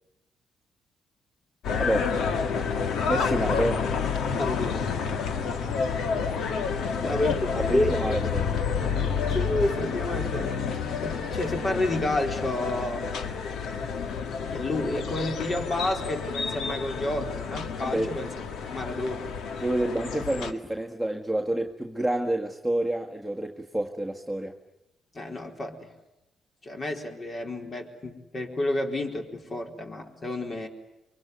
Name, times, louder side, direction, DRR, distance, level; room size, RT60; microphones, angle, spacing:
sound 1, 1.6-20.5, left 6 dB, 75° left, 1.9 m, -29 dB
voice 1, 1.8-2.1 3.1-3.9 7.0-7.2 7.5-8.6 17.8-18.1 19.6-24.5, right 1 dB, ahead, 1 dB, 1.7 m, -28 dB
voice 2, 4.4-4.9 7.0-8.4 9.3-10.6 11.0-13.1 14.5-18.3 18.7-19.3 25.1-25.9 26.6-30.7, left 1 dB, 40° left, 3 dB, 4.3 m, -30 dB
24.5 x 23.0 x 9.5 m, 0.95 s
cardioid pair, 90°, 0 cm